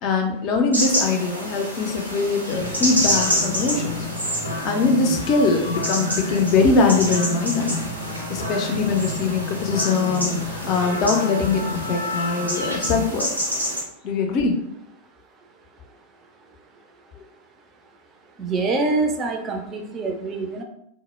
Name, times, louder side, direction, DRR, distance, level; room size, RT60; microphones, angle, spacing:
voice 1, 0.0-3.9 4.6-7.8 8.3-13.3 14.0-14.6, left 4 dB, 40° left, 3 dB, 0.5 m, -22 dB
sound 1, 0.7-13.8, equal, 85° right, 0.6 m, -28 dB
sound 2, 2.5-13.0, left 2 dB, 90° left, 0.6 m, -31 dB
voice 2, 18.4-20.6, right 3 dB, 25° right, 3 dB, 0.4 m, -25 dB
2.1 x 2.0 x 3.0 m, 0.74 s
figure-of-eight pair, 90°, 0 cm